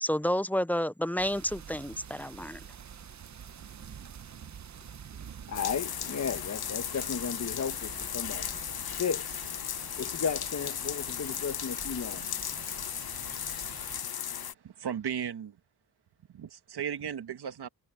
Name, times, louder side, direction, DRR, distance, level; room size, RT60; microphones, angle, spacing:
voice 1, 0.0-2.6, equal, 5° left, 0.4 m, -30 dB
sound 1, 1.2-14.0, right 8 dB, 40° right, 0.8 m, -47 dB
sound 2, 5.5-14.5, left 9 dB, 60° left, 1.1 m, -36 dB
voice 2, 5.5-8.5 9.0-9.4 10.0-12.2, left 6 dB, 40° left, 1.1 m, -34 dB
voice 3, 14.2-15.6 16.3-17.7, right 8 dB, 65° right, 1.6 m, -36 dB
cardioid pair, 90°, 42 cm